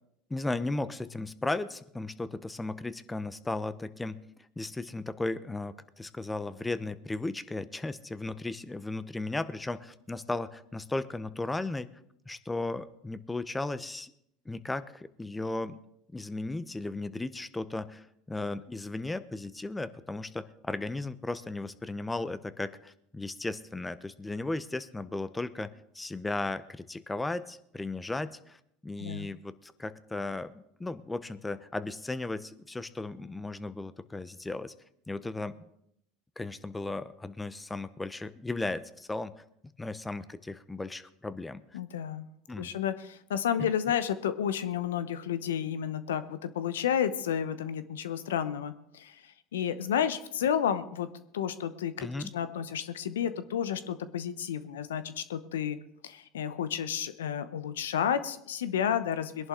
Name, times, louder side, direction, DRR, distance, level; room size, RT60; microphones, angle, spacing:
voice 1, 0.3-4.2 4.6-11.9 12.3-14.1 14.4-15.8 16.1-34.7 35.1-35.6 36.4-39.3 39.8-41.6 42.5-42.8 43.6-43.7 52.0-52.3, left 2 dB, 15° left, 14 dB, 0.9 m, -36 dB
voice 2, 41.7-51.1 51.3-52.1 52.3-55.8 56.0-59.5, left 9 dB, 85° left, 13 dB, 0.9 m, -31 dB
21.0 x 11.0 x 3.8 m, 0.75 s
hypercardioid pair, 80°, 0 cm